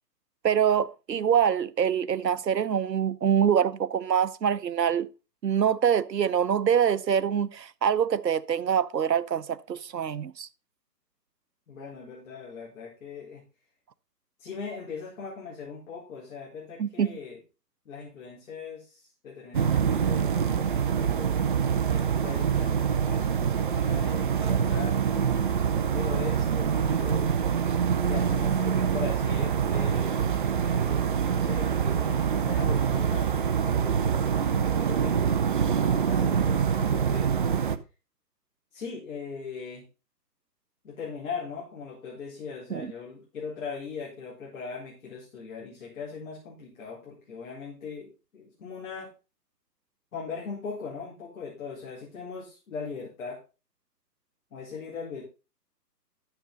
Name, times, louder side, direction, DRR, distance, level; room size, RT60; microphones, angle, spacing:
voice 1, 0.4-5.1 5.4-10.5 16.8-17.1 42.7-42.9, right 8 dB, 85° right, 0.9 m, -25 dB
voice 2, 11.7-13.4 14.4-17.4 17.8-21.3 21.9-25.0 25.9-27.3 28.0-33.3 33.8-37.6 38.7-39.8 40.8-49.1 50.1-53.4 54.5-55.2, left 5 dB, 55° left, 4.3 m, -40 dB
sound 1, 19.5-37.8, right 7 dB, 35° right, 0.5 m, -25 dB
12.5 x 6.8 x 3.9 m
figure-of-eight pair, 135°, 49 cm